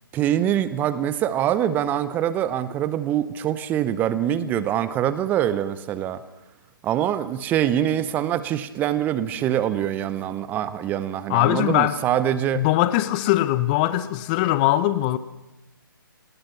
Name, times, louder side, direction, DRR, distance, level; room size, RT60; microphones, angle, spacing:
voice 1, 0.1-6.2 6.8-12.6, right 10 dB, 15° right, 0.8 m, -24 dB
voice 2, 11.3-12.0 12.5-15.2, left 15 dB, 25° left, 0.7 m, -21 dB
26.5 x 19.0 x 5.9 m
figure-of-eight pair, 135°, 12 cm